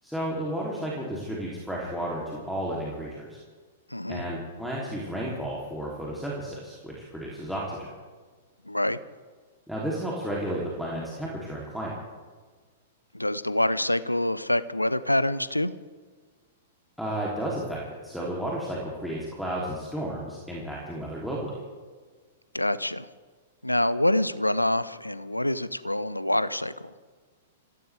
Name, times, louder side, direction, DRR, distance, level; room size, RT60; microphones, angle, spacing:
voice 1, 0.0-3.4 4.1-7.9 9.7-12.0 17.0-21.6, right 1 dB, ahead, -4 dB, 3.2 m, -32 dB
voice 2, 3.9-4.2 8.7-9.0 13.1-15.7 22.5-23.1 23.6-26.9, left 1 dB, 90° left, 16 dB, 0.7 m, -26 dB
25.5 x 16.0 x 3.5 m, 1.5 s
figure-of-eight pair, 105°, 0 cm